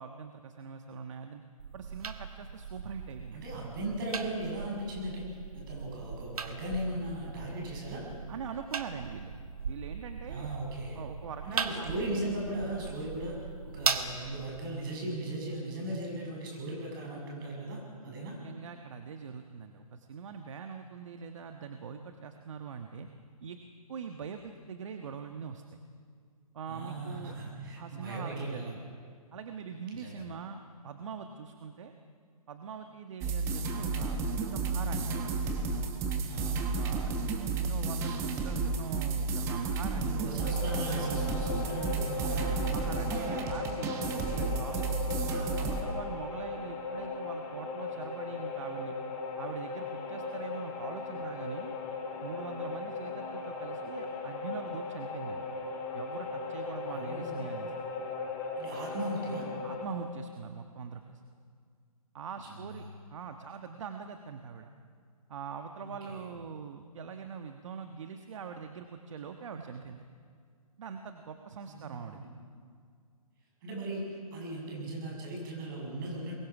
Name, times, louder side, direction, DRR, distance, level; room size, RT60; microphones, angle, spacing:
voice 1, 0.0-1.4 1.7-3.7 8.3-9.3 9.7-10.5 10.9-11.9 18.0-18.1 18.4-23.1 23.4-23.6 23.9-25.6 26.5-27.3 27.8-28.8 29.3-31.9 32.5-35.3 36.8-37.1 37.5-40.2 42.7-43.2 43.5-45.2 45.6-48.9 49.4-51.7 52.2-55.5 55.9-57.7 59.6-61.2 62.1-62.9 63.1-64.7 65.3-70.0 70.8-72.3, right 6 dB, 55° right, 6 dB, 1.4 m, -43 dB
sound 1, 1.6-14.6, right 5 dB, 75° right, 1.8 m, -39 dB
voice 2, 3.3-5.2 5.5-8.0 10.3-11.0 11.4-18.4 26.7-28.7 29.9-30.2 36.3-36.6 40.1-42.7 44.1-44.5 56.9-57.4 58.6-59.5 62.4-62.9 65.8-66.3 71.7-72.4 73.6-76.4, right 1 dB, 35° right, -1 dB, 7.6 m, -38 dB
sound 2, 33.2-45.8, right 4 dB, 15° right, 1.4 m, -32 dB
sound 3, 40.4-59.8, left 4 dB, 30° left, 3.4 m, -38 dB
25.5 x 22.0 x 6.1 m, 2.1 s
hypercardioid pair, 155°, 19 cm